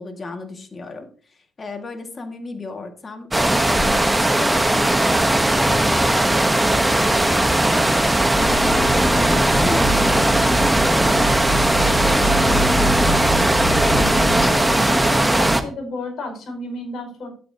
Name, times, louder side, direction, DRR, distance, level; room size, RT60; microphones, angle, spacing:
voice 1, 0.0-8.0 8.5-13.2, left 3 dB, 35° left, 5 dB, 1.9 m, -35 dB
sound 1, 3.3-15.6, right 1 dB, 10° right, 1.0 m, -18 dB
Bus, 8.3-14.5, left 1 dB, 15° left, 1.5 m, -25 dB
voice 2, 13.8-17.3, left 1 dB, 60° left, 1 dB, 5.5 m, -31 dB
12.0 x 8.7 x 2.8 m, 0.42 s
cardioid pair, 90°, 0 cm